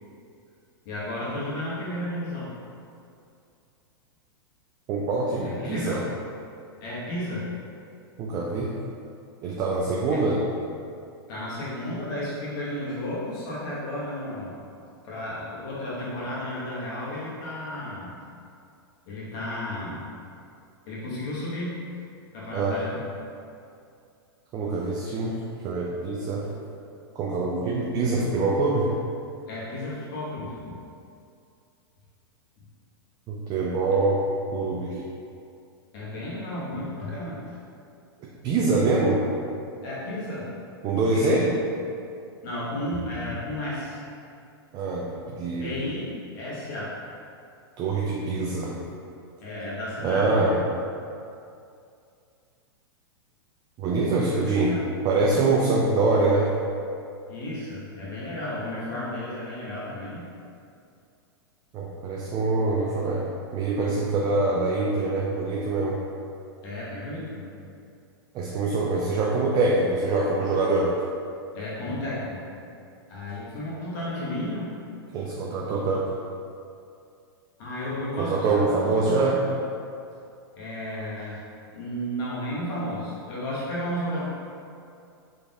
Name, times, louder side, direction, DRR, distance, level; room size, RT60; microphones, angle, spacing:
voice 1, 0.8-2.5 5.4-6.1 6.8-7.5 10.1-10.2 11.3-14.6 15.0-18.2 19.1-20.0 20.9-21.8 22.3-23.0 29.5-30.7 35.9-37.6 39.8-40.5 41.1-41.5 42.4-44.0 45.6-47.0 49.4-50.7 54.3-54.8 57.3-60.2 66.6-67.5 71.5-72.4 73.1-74.7 77.6-79.5 80.5-81.4 81.7-84.3, left 1 dB, 55° left, -7 dB, 1.3 m, -33 dB
voice 2, 4.9-6.0 8.2-8.7 9.4-10.4 22.5-22.8 24.5-26.5 27.2-28.9 33.3-34.3 34.5-35.0 38.4-39.2 40.8-41.5 44.7-45.9 47.8-48.8 50.0-50.6 53.8-54.8 55.0-56.5 61.7-66.0 68.3-70.9 75.1-76.1 78.2-79.4, right 3 dB, 30° right, -3 dB, 0.4 m, -24 dB
3.9 x 3.4 x 2.4 m, 2.5 s
hypercardioid pair, 115°, 13 cm